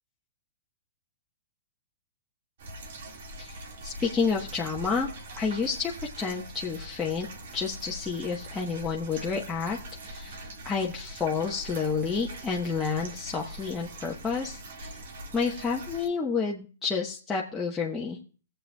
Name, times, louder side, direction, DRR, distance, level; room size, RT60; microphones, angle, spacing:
sound 1, 2.6-16.1, right 1 dB, 60° right, 2.0 m, -42 dB
voice 1, 3.4-5.1 5.4-7.3 7.5-9.8 10.0-14.9 15.3-18.2, left 5 dB, 15° left, -3 dB, 1.1 m, -30 dB
19.0 x 7.9 x 2.3 m, 0.37 s
figure-of-eight pair, 110°, 0 cm